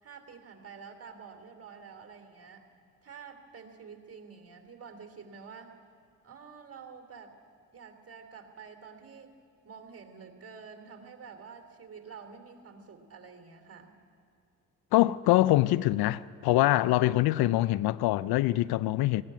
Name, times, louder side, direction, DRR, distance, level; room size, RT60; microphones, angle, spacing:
voice 1, 0.0-2.7 3.0-5.8 6.2-7.4 7.7-9.3 9.6-13.9, right 6 dB, 35° right, 3.1 m, -48 dB
voice 2, 14.9-19.2, left 16 dB, 65° left, 0.5 m, -24 dB
18.5 x 16.5 x 9.3 m
hypercardioid pair, 55°, 40 cm